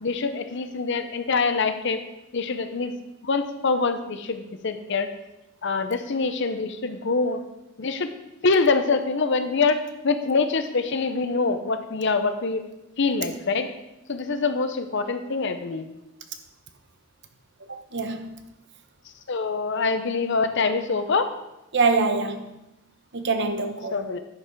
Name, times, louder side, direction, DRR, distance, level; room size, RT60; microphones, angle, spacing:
voice 1, 0.0-2.0 2.3-2.9 3.2-5.1 5.6-7.4 7.8-8.1 8.4-9.8 10.0-12.6 13.0-13.7 14.1-15.9 19.3-21.3 23.9-24.2, left 4 dB, 60° left, 0.7 m, -24 dB
voice 2, 17.7-18.3 21.7-22.5 23.1-24.0, right 4 dB, 55° right, 1.0 m, -24 dB
11.0 x 5.8 x 4.6 m
head